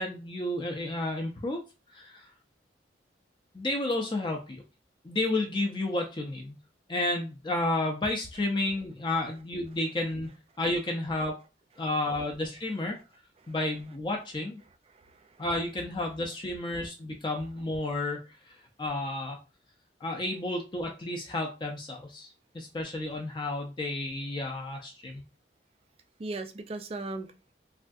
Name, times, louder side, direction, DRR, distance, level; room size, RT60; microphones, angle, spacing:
voice 1, 0.0-1.6 1.9-2.3 3.5-4.6 5.0-6.6 6.9-10.3 10.6-11.4 11.8-13.0 13.5-14.6 15.4-19.4 20.0-25.2, left 2 dB, 25° left, 0.5 m, -31 dB
voice 2, 14.9-15.4 26.2-27.5, right 2 dB, 35° right, 0.3 m, -39 dB
3.3 x 2.3 x 2.6 m
head